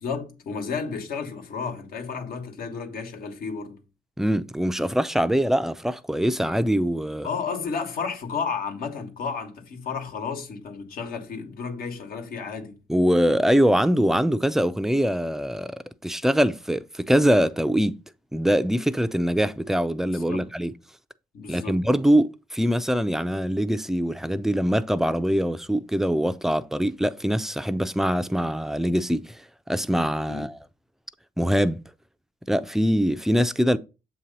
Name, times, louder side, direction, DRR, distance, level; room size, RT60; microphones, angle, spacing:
voice 1, 0.0-3.8 7.2-12.8 20.1-20.5 21.3-21.8 30.3-30.5, left 5 dB, 65° left, 1.3 m, -32 dB
voice 2, 4.2-7.3 12.9-18.0 18.3-20.7 21.5-29.4 29.7-30.6 31.4-31.8 32.5-33.8, equal, ahead, 0.4 m, -23 dB
7.4 x 2.8 x 5.2 m
supercardioid pair, 75°, 16 cm